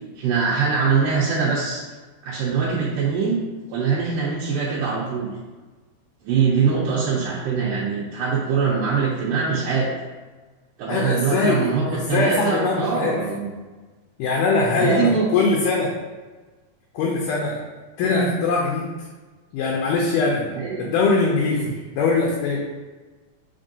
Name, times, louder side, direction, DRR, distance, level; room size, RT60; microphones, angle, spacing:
voice 1, 0.2-1.8 2.2-3.4 3.7-5.3 6.2-9.9 10.8-13.5 14.7-15.3 18.0-18.3 20.5-20.9 21.5-21.7, right 5 dB, 80° right, -6 dB, 2.3 m, -23 dB
voice 2, 10.9-13.2 14.2-15.9 16.9-17.6 18.0-18.9 19.5-20.4 20.8-22.6, left 4 dB, 80° left, -3 dB, 2.1 m, -22 dB
5.4 x 3.5 x 2.6 m, 1.3 s
omnidirectional pair, 4.0 m